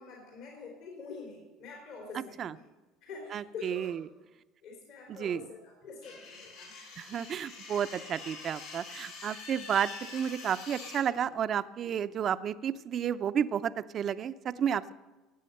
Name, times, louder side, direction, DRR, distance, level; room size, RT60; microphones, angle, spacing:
voice 1, 0.0-2.6 3.0-3.9 4.6-6.7, left 4 dB, 70° left, -1 dB, 3.5 m, -45 dB
voice 2, 2.1-2.6 3.3-4.0 5.1-5.5 7.0-14.9, right 8 dB, 45° right, 13 dB, 0.5 m, -32 dB
sound 1, 6.0-11.0, left 4 dB, 85° left, 6.0 m, -45 dB
16.0 x 8.4 x 6.6 m, 1.1 s
hypercardioid pair, 85°, 0 cm